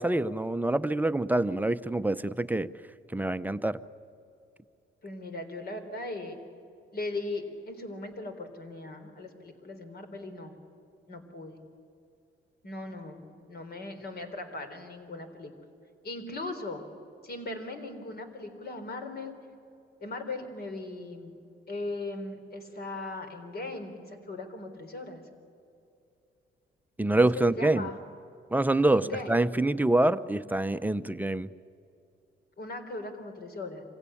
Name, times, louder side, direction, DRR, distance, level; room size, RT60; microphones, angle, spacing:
voice 1, 0.0-2.7 3.1-3.8 27.0-27.9 28.5-31.5, right 2 dB, 10° right, 12 dB, 0.7 m, -26 dB
voice 2, 5.0-6.4 6.9-10.5 11.1-11.6 12.6-15.5 16.0-16.8 17.2-19.3 20.0-21.4 21.7-25.2 27.2-28.0 28.9-29.3 32.6-33.8, left 2 dB, 55° left, 6 dB, 3.9 m, -38 dB
26.0 x 16.5 x 9.9 m, 2.6 s
cardioid pair, 90°, 20 cm